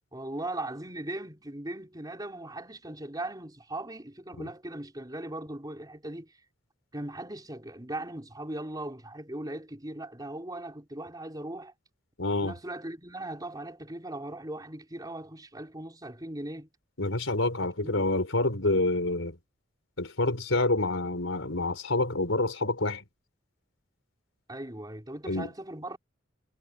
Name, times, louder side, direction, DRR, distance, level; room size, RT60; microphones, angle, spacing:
voice 1, 0.1-6.3 6.9-11.7 12.3-16.7 17.6-18.1 24.5-26.0, right 1 dB, 20° right, 4.5 m, -39 dB
voice 2, 12.2-12.5 17.0-19.4 20.0-23.0 25.3-25.5, left 2 dB, 80° left, 3.9 m, -27 dB
head